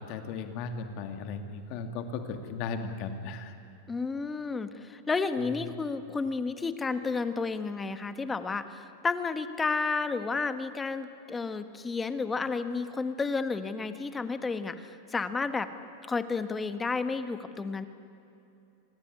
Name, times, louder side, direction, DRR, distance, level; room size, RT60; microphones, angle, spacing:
voice 1, 0.0-3.6, left 5 dB, 45° left, 6 dB, 2.4 m, -36 dB
voice 2, 3.9-15.7 16.1-17.9, left 4 dB, 15° left, 10 dB, 1.4 m, -31 dB
25.5 x 19.0 x 9.8 m, 2.8 s
supercardioid pair, 140°, 0 cm